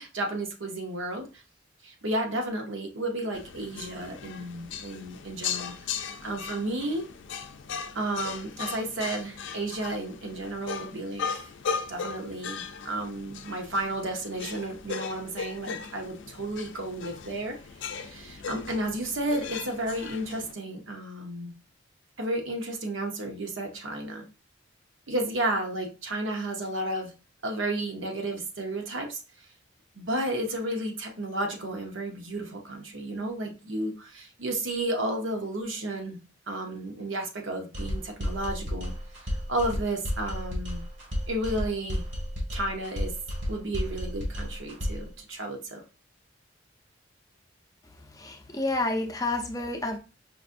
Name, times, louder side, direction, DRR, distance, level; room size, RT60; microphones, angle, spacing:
voice 1, 0.0-1.4 1.8-7.1 7.9-11.5 11.9-17.6 17.8-21.5 22.2-24.2 25.1-27.1 27.4-29.2 30.0-36.2 36.5-38.9 39.5-40.8 41.3-42.0 42.5-43.1 43.5-45.8, right 1 dB, 90° right, 0.8 m, -32 dB
sound 1, 3.3-20.5, left 6 dB, 70° left, 0.4 m, -38 dB
sound 2, 37.7-45.1, equal, 70° right, 1.5 m, -32 dB
voice 2, 48.2-50.0, left 2 dB, 20° left, 0.5 m, -29 dB
5.0 x 2.5 x 2.5 m
head